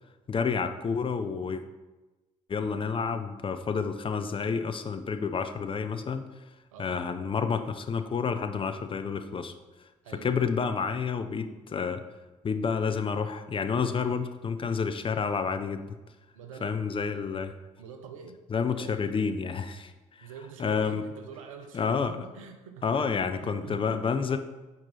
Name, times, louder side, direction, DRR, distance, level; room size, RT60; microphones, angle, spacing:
voice 1, 0.3-1.6 2.5-6.3 6.8-9.5 10.1-12.0 12.4-15.9 16.6-17.5 18.5-19.9 20.2-20.3 20.6-21.0 21.7-22.1 22.8-24.4, left 5 dB, 30° left, 8 dB, 0.6 m, -29 dB
voice 2, 6.7-7.0 10.0-10.4 16.3-16.8 17.8-18.4 18.6-19.0 20.2-24.0, right 6 dB, 80° right, 6 dB, 0.6 m, -45 dB
7.7 x 4.5 x 4.2 m, 1.1 s
figure-of-eight pair, 45°, 17 cm